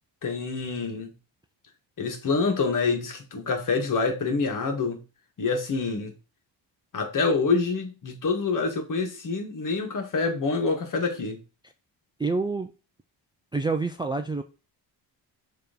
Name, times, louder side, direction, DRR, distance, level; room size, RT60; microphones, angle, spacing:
voice 1, 0.2-1.1 2.0-5.0 5.4-6.1 6.9-11.4, left 4 dB, 50° left, 1.7 m, -26 dB
voice 2, 12.2-12.7 13.5-14.4, right 3 dB, 10° right, 0.4 m, -27 dB
6.8 x 3.2 x 5.1 m
cardioid pair, 135°, 41 cm